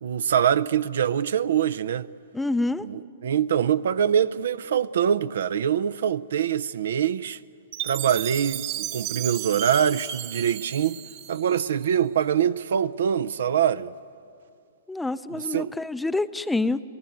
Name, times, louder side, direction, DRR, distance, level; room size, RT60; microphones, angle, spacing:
voice 1, 0.0-2.1 2.8-7.4 7.8-11.0 11.3-13.9 15.3-15.7, right 8 dB, 65° right, 0.6 m, -24 dB
voice 2, 2.3-2.9 14.9-16.8, left 2 dB, 5° left, 0.5 m, -27 dB
Chime, 7.7-12.0, right 12 dB, 45° right, 1.2 m, -34 dB
27.5 x 17.5 x 9.3 m
figure-of-eight pair, 115°, 0 cm